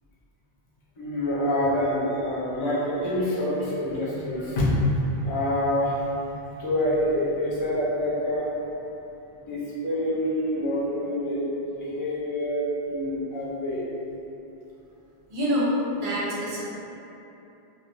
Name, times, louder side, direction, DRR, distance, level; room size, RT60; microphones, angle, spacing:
voice 1, 1.0-8.5 9.5-13.8, left 1 dB, 40° left, -8 dB, 0.4 m, -26 dB
voice 2, 15.3-16.6, equal, 55° right, -7 dB, 0.7 m, -26 dB
2.3 x 2.1 x 2.8 m, 2.9 s
omnidirectional pair, 1.1 m